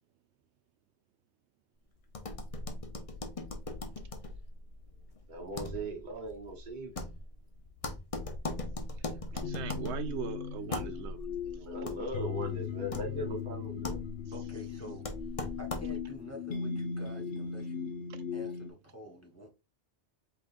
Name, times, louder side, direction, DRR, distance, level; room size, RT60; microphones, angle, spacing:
sound 1, 2.1-16.2, left 2 dB, 35° left, 0.7 m, -40 dB
voice 1, 5.3-7.1 11.4-14.0, right 1 dB, 45° right, 1.2 m, -39 dB
voice 2, 9.3-11.2 18.1-18.2, right 8 dB, 90° right, 0.9 m, -40 dB
sound 2, 9.4-18.7, left 7 dB, 65° left, 0.9 m, -38 dB
voice 3, 14.3-15.0 15.6-18.0 18.3-19.5, equal, 15° left, 1.2 m, -48 dB
4.8 x 3.7 x 2.5 m
omnidirectional pair, 1.1 m